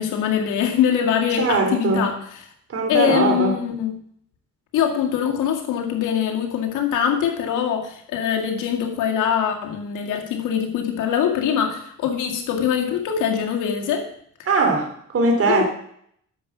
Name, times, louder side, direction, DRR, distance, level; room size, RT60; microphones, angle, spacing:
voice 1, 0.0-2.1 2.9-3.9 4.7-14.1 15.5-15.6, left 8 dB, 85° left, 2 dB, 2.2 m, -23 dB
voice 2, 1.4-2.1 2.7-3.5 14.5-15.6, right 3 dB, 50° right, 4 dB, 3.2 m, -20 dB
10.0 x 7.4 x 6.1 m, 0.67 s
cardioid pair, 90°, 30 cm